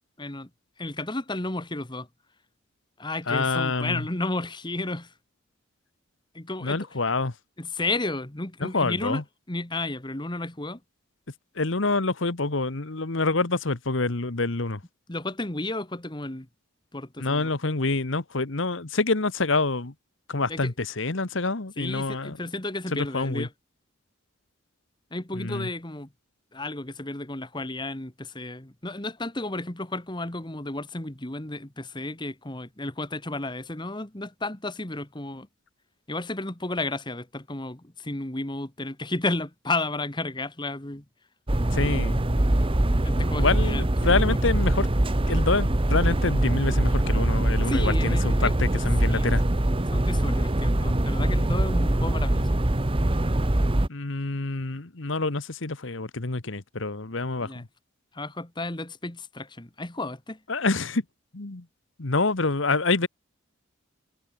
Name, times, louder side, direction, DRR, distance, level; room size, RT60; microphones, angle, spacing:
voice 1, 0.2-0.5 0.8-2.1 3.0-5.1 6.3-6.8 7.6-9.2 9.5-10.8 15.1-16.5 16.9-17.5 20.5-20.7 21.8-23.5 25.1-26.1 26.5-35.5 36.1-41.0 43.0-44.4 47.7-48.5 49.0-49.3 49.9-52.6 57.4-57.6 58.1-60.4, left 2 dB, 20° left, 1.6 m, -32 dB
voice 2, 3.3-4.0 6.6-7.3 8.6-9.2 11.6-14.8 17.2-19.9 20.3-22.4 22.9-23.5 25.4-25.7 41.7-42.3 43.4-44.9 45.3-49.4 53.9-57.7 60.5-61.0 61.3-61.6 62.0-63.1, left 3 dB, 65° left, 1.3 m, -27 dB
sound 1, 41.5-53.9, right 1 dB, 25° right, 1.0 m, -23 dB
head